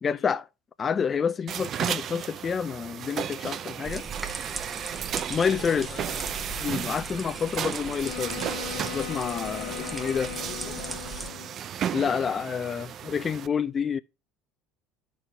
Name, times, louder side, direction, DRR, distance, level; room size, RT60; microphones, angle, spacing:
voice 1, 0.0-0.5 0.8-4.1 5.3-5.9 6.6-8.4 8.7-10.3 11.9-14.0, left 6 dB, 30° left, 0.3 m, -28 dB
sound 1, 1.5-13.5, right 9 dB, 45° right, 0.3 m, -34 dB
sound 2, 3.8-11.3, right 2 dB, 10° right, 0.8 m, -39 dB
voice 2, 5.4-6.5 10.3-11.6, left 6 dB, 50° left, 0.8 m, -45 dB
Wind instrument woodwind instrument, 8.0-11.6, left 14 dB, 80° left, 1.0 m, -38 dB
11.0 x 4.1 x 2.2 m
supercardioid pair, 105°, 0 cm